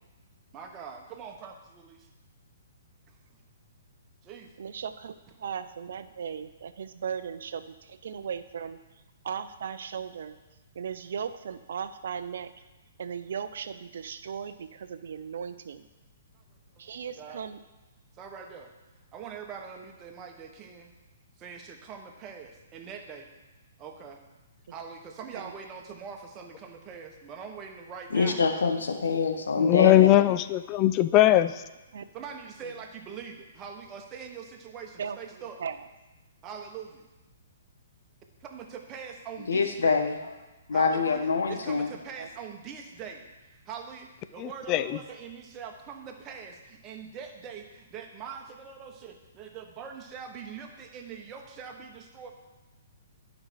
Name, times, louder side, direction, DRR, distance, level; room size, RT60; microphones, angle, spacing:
voice 1, 0.5-2.1 3.3-3.4 4.2-4.5 16.8-17.4 18.1-18.7 19.1-20.9 21.4-23.3 23.8-24.2 24.7-28.4 31.9-35.6 36.4-37.0 38.4-40.0 40.7-52.3, right 6 dB, 25° right, 3 dB, 1.2 m, -43 dB
voice 2, 4.6-8.8 9.2-10.4 10.7-12.5 13.0-15.9 16.8-17.6 25.3-25.5 31.9-32.0 32.6-32.7 35.0-35.2 35.6-35.8 42.2-42.3, right 7 dB, 60° right, 12 dB, 0.6 m, -37 dB
voice 3, 28.1-30.1 39.5-40.1 40.7-41.9, left 4 dB, 70° left, 6 dB, 1.0 m, -25 dB
voice 4, 29.6-31.5 44.4-44.9, left 14 dB, 30° left, 13 dB, 0.4 m, -20 dB
11.0 x 5.3 x 4.6 m, 1.1 s
figure-of-eight pair, 125°, 0 cm